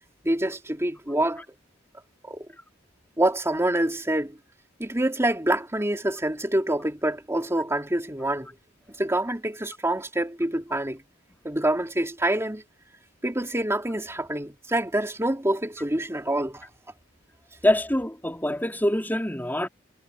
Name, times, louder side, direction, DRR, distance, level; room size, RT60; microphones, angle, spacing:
voice 1, 0.2-1.4 2.2-2.5 3.2-4.4 4.8-8.5 9.0-11.0 11.4-12.6 13.2-16.7, right 1 dB, 15° right, 3.1 m, -26 dB
voice 2, 17.6-19.7, left 1 dB, 10° left, 3.6 m, -24 dB
head